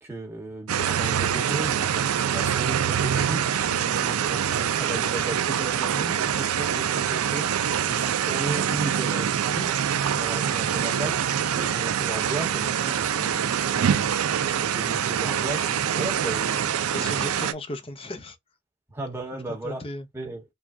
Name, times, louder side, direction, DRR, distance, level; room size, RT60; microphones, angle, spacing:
voice 1, 0.0-9.8 10.2-11.2 11.5-17.3 18.9-20.4, right 2 dB, 10° right, 1.1 m, -36 dB
sound 1, 0.7-17.5, right 8 dB, 80° right, 0.4 m, -25 dB
voice 2, 16.9-18.4 19.5-20.1, left 1 dB, 25° left, 0.5 m, -36 dB
5.0 x 2.3 x 2.5 m
head